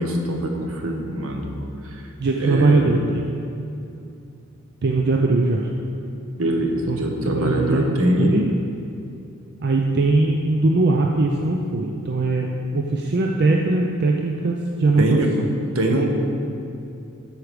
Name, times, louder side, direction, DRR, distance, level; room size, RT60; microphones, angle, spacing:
voice 1, 0.0-1.5 2.4-2.9 6.4-8.4 15.0-15.3 15.7-16.1, right 1 dB, 75° right, 2 dB, 1.2 m, -23 dB
voice 2, 2.2-3.3 4.8-5.7 6.9-7.0 7.2-8.5 9.6-15.5, right 2 dB, 55° right, 1 dB, 0.6 m, -20 dB
12.5 x 4.7 x 5.1 m, 2.7 s
head